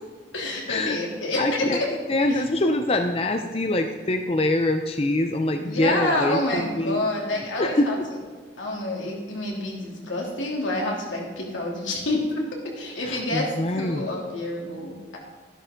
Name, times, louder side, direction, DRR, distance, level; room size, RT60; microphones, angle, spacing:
voice 1, 0.3-1.9 2.3-2.4 5.6-8.2 8.6-15.2, left 1 dB, 90° left, -2 dB, 3.0 m, -28 dB
voice 2, 1.4-1.8 2.1-7.1 7.6-8.0 13.0-14.1, left 1 dB, 30° left, 6 dB, 0.6 m, -24 dB
13.0 x 11.0 x 3.8 m, 1.5 s
head